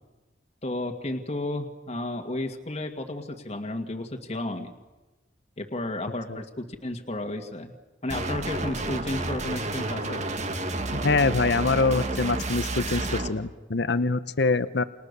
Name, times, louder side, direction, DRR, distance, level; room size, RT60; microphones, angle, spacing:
voice 1, 0.6-4.7 5.6-7.7 8.0-10.3, left 1 dB, 35° left, 3 dB, 1.9 m, -32 dB
sound 1, 8.1-13.3, right 2 dB, 40° right, 1.8 m, -30 dB
voice 2, 10.9-14.8, left 3 dB, 60° left, 13 dB, 0.8 m, -24 dB
29.5 x 28.5 x 6.8 m, 1.1 s
head